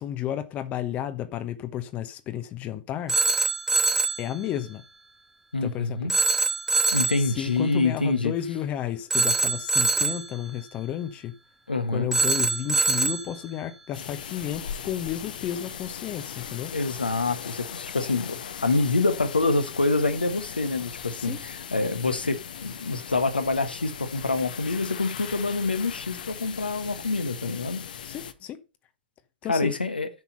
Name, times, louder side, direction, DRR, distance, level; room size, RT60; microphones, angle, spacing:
voice 1, 0.0-3.1 4.2-4.8 5.6-6.1 7.2-11.3 11.9-16.7 21.1-21.4 28.0-28.6 29.4-29.7, left 11 dB, 30° left, 1.1 m, -32 dB
Telephone, 3.1-4.3 6.1-7.3 9.1-10.3 12.1-13.3, right 3 dB, 5° right, 0.7 m, -23 dB
voice 2, 5.5-6.1 6.9-8.3 11.7-12.1 16.7-27.8 29.5-30.1, left 3 dB, 80° left, 1.5 m, -26 dB
sound 1, 13.9-28.3, left 8 dB, 60° left, 1.2 m, -39 dB
9.7 x 5.9 x 5.6 m
figure-of-eight pair, 105°, 5 cm